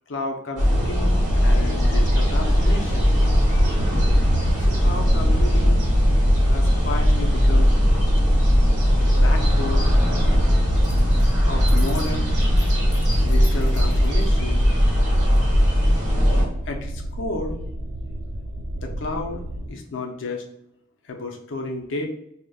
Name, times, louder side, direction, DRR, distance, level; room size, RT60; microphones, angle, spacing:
voice 1, 0.1-3.2 4.6-5.9 6.5-7.7 9.0-10.0 11.5-12.3 13.2-14.6 16.7-17.6 18.8-19.4 19.7-20.4 21.0-22.1, left 2 dB, 70° left, 1 dB, 0.5 m, -32 dB
sound 1, 0.6-16.4, equal, 40° right, 0.9 m, -18 dB
sound 2, 6.3-19.7, right 1 dB, 80° right, 0.4 m, -33 dB
sound 3, 10.8-11.3 11.6-14.3, left 2 dB, 15° left, 0.5 m, -43 dB
4.8 x 2.1 x 2.2 m, 0.78 s
head